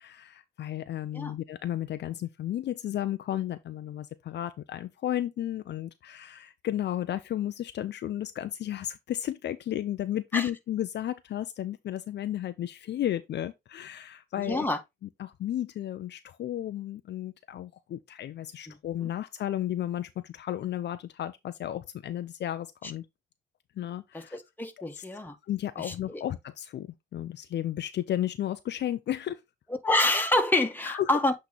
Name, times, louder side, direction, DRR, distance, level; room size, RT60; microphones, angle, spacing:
voice 1, 0.0-14.7 15.2-23.1 23.8-24.4 25.0-25.1 25.5-29.4 30.8-31.1, left 12 dB, 60° left, 0.6 m, -33 dB
voice 2, 14.4-14.8 18.7-18.8 24.1-25.3 25.8-26.2 29.8-31.3, left 2 dB, 10° left, 1.7 m, -27 dB
8.3 x 3.3 x 4.0 m
cardioid pair, 90°, 20 cm